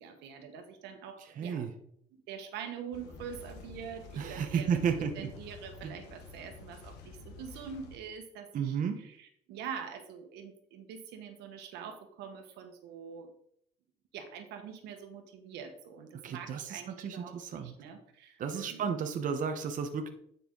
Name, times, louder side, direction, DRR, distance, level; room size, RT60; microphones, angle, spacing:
voice 1, 0.0-1.7 2.3-13.3 14.1-18.9, right 7 dB, 85° right, 6 dB, 1.5 m, -45 dB
voice 2, 1.4-1.7 4.2-5.3 5.8-5.9 8.5-9.0 16.2-17.7 18.4-20.1, right 7 dB, 50° right, 5 dB, 1.0 m, -33 dB
sound 1, 2.9-8.0, left 4 dB, 90° left, 1.7 m, -49 dB
9.8 x 5.7 x 3.8 m, 0.68 s
cardioid pair, 110°, 17 cm